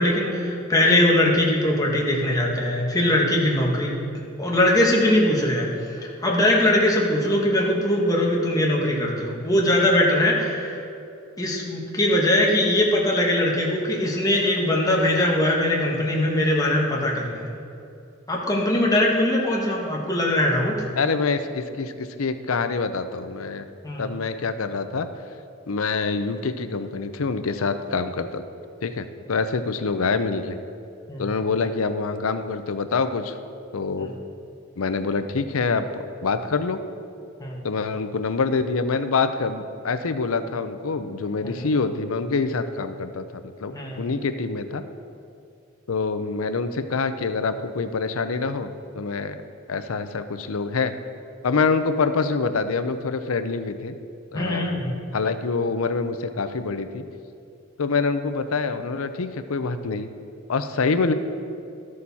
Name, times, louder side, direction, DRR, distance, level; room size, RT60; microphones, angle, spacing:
voice 1, 0.0-4.0 4.4-10.8 11.4-17.5 18.3-20.8 23.8-24.1 31.1-31.3 34.0-34.1 37.4-37.6 41.4-41.7 43.7-44.0 54.3-55.0, left 1 dB, 15° left, -2 dB, 1.4 m, -21 dB
voice 2, 21.0-23.6 24.0-25.1 25.7-28.4 28.8-30.6 31.2-33.3 33.7-34.1 34.8-36.8 37.6-43.2 43.6-44.8 45.9-49.4 49.7-50.9 51.4-54.0 54.3-54.7 55.1-57.0 57.8-60.1 60.5-61.1, left 4 dB, 90° left, 10 dB, 0.6 m, -25 dB
13.0 x 6.6 x 4.2 m, 2.6 s
head